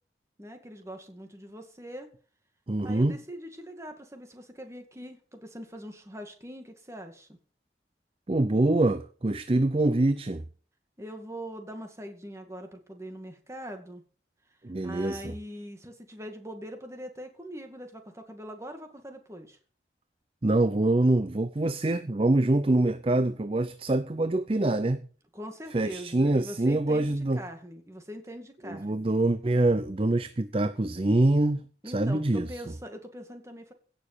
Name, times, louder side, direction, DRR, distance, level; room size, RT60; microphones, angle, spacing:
voice 1, 0.4-2.1 2.8-7.4 11.0-14.0 14.8-19.6 25.3-29.1 31.8-33.7, equal, 15° right, 2.2 m, -42 dB
voice 2, 2.7-3.2 8.3-10.4 14.6-15.3 20.4-25.0 25.7-27.4 28.6-32.5, right 2 dB, 30° right, 0.6 m, -25 dB
16.5 x 6.9 x 6.8 m
head